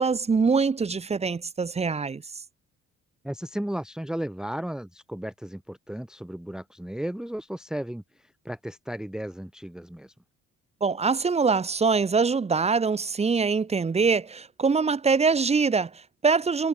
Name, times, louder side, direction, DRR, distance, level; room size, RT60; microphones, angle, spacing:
voice 1, 0.0-2.4 10.8-16.7, right 5 dB, 20° right, 0.7 m, -24 dB
voice 2, 3.2-10.1, right 1 dB, ahead, 1.0 m, -34 dB
cardioid pair, 90°, 30 cm